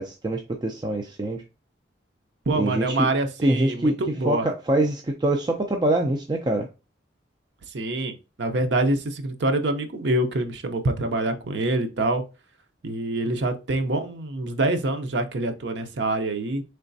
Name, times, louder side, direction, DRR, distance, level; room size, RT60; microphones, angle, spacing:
voice 1, 0.0-1.4 2.5-3.1 3.4-3.9 4.2-6.7, right 1 dB, 25° right, 2 dB, 0.3 m, -24 dB
voice 2, 2.5-4.5 7.7-12.2 12.8-16.6, right 2 dB, 70° right, 7 dB, 0.6 m, -25 dB
3.9 x 3.3 x 2.6 m, 0.30 s
head